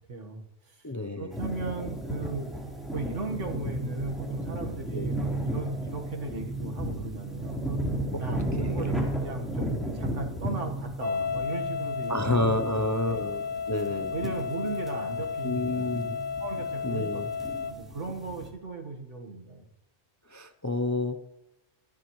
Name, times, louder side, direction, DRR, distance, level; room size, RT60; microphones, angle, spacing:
voice 1, 0.1-0.9 1.2-2.5 2.9-7.8 8.2-13.2 14.1-17.2 17.7-19.7, right 3 dB, 85° right, 2 dB, 1.9 m, -37 dB
voice 2, 0.8-1.4 4.9-5.2 8.1-8.2 8.6-9.4 12.1-14.1 15.4-16.2 16.8-17.3 20.3-21.2, left 2 dB, 25° left, 7 dB, 0.4 m, -30 dB
sound 1, 1.3-18.5, right 1 dB, ahead, 3.8 m, -34 dB
sound 2, 11.0-17.7, left 5 dB, 90° left, 1.2 m, -33 dB
25.5 x 10.5 x 3.2 m, 0.96 s
omnidirectional pair, 1.2 m